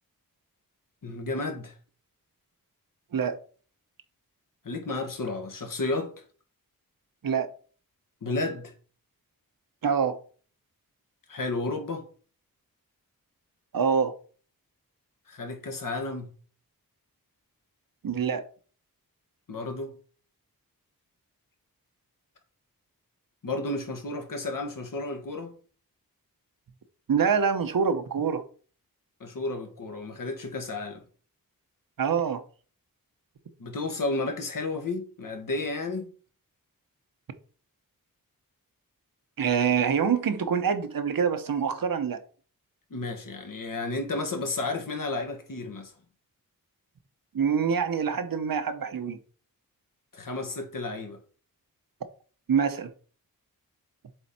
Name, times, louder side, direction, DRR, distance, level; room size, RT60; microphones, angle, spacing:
voice 1, 1.0-1.7 4.6-6.1 8.2-8.7 11.3-12.0 15.3-16.3 19.5-19.9 23.4-25.5 29.2-31.0 33.6-36.1 42.9-45.9 50.1-51.2, left 2 dB, 65° left, 1.5 m, -32 dB
voice 2, 9.8-10.2 13.7-14.1 18.0-18.4 27.1-28.4 32.0-32.4 39.4-42.2 47.3-49.2 52.5-52.9, right 6 dB, 70° right, 0.9 m, -25 dB
7.8 x 3.8 x 4.2 m
wide cardioid pair, 85°, 36 cm